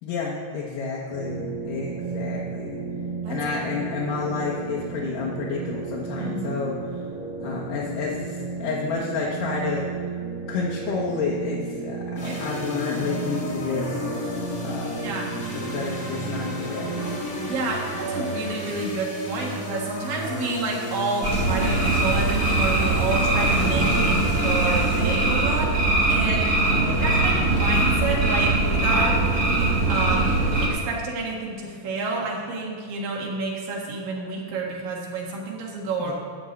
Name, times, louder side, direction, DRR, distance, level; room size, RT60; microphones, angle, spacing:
voice 1, 0.0-2.8 3.3-6.8 7.4-9.9 10.5-14.0 14.6-15.1 15.5-17.0 23.6-24.3 26.7-27.9 36.1-36.2, left 4 dB, 75° left, -5 dB, 2.8 m, -30 dB
sound 1, 1.1-18.8, right 4 dB, 55° right, 2.2 m, -33 dB
voice 2, 6.2-6.5 12.2-12.5 15.0-15.4 17.4-29.5 29.9-36.1, right 3 dB, 85° right, -2 dB, 3.4 m, -29 dB
sound 2, 12.1-25.7, left 2 dB, 40° left, 1.5 m, -34 dB
sound 3, 21.2-30.7, right 2 dB, 35° right, 1.2 m, -21 dB
12.5 x 4.5 x 8.2 m, 2.1 s
omnidirectional pair, 3.9 m